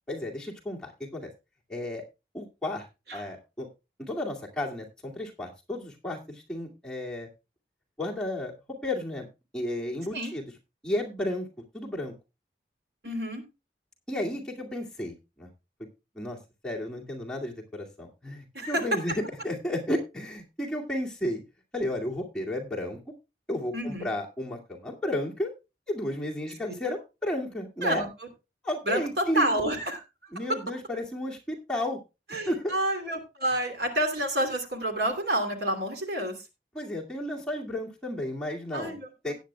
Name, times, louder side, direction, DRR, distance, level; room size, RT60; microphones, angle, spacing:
voice 1, 0.1-1.3 1.7-2.0 2.3-2.9 3.1-3.7 4.0-7.3 8.0-8.5 8.8-9.3 9.5-10.4 10.8-11.5 11.7-12.1 14.1-15.5 16.1-16.4 16.6-19.1 19.4-21.4 21.7-23.0 23.5-25.5 25.9-28.1 28.6-29.6 30.3-32.0 32.3-32.7 36.7-39.0 39.2-39.3, left 1 dB, 5° left, -3 dB, 2.2 m, -33 dB
voice 2, 13.0-13.4 18.5-19.2 23.7-24.1 27.8-28.1 28.8-30.3 32.3-36.4 38.7-39.3, right 1 dB, 65° right, 5 dB, 2.8 m, -29 dB
17.5 x 9.5 x 2.3 m, 0.26 s
head